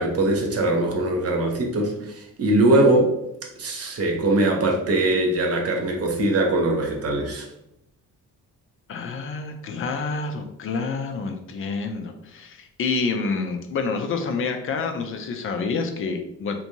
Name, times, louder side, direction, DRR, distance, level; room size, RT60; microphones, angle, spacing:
voice 1, 0.0-3.1 3.6-7.5, right 2 dB, 30° right, 1 dB, 0.8 m, -21 dB
voice 2, 8.9-16.6, left 4 dB, 30° left, 5 dB, 0.5 m, -28 dB
3.6 x 2.5 x 2.8 m, 0.82 s
figure-of-eight pair, 40°, 46 cm